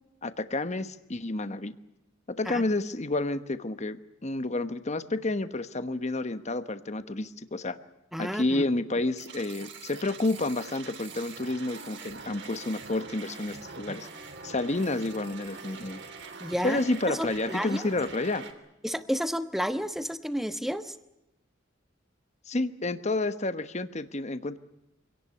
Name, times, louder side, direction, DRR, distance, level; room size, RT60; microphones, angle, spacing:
voice 1, 0.2-1.8 2.3-7.8 8.2-14.1 14.4-16.0 16.6-18.4 22.5-24.6, left 2 dB, 35° left, 11 dB, 1.1 m, -30 dB
voice 2, 8.1-8.6 13.9-14.0 16.4-16.8 17.1-17.8 18.8-20.9, equal, ahead, 10 dB, 1.2 m, -31 dB
sound 1, 9.2-18.5, right 4 dB, 60° right, 3.2 m, -44 dB
25.5 x 18.0 x 9.7 m, 0.88 s
head